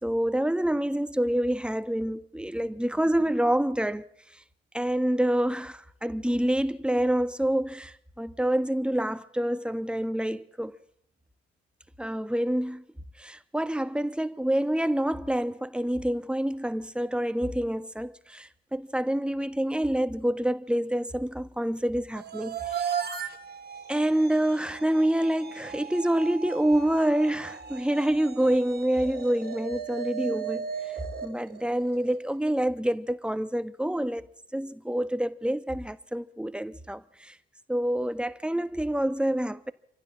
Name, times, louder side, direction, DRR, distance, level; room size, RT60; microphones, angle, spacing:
voice 1, 0.0-4.1 4.7-10.8 12.0-12.8 13.2-23.0 23.9-30.9 31.2-34.3 34.5-37.4 37.7-39.7, right 1 dB, 5° right, 1.3 m, -27 dB
sound 1, 22.2-32.3, right 7 dB, 30° right, 2.5 m, -37 dB
26.5 x 15.0 x 7.5 m
figure-of-eight pair, 50°, 31 cm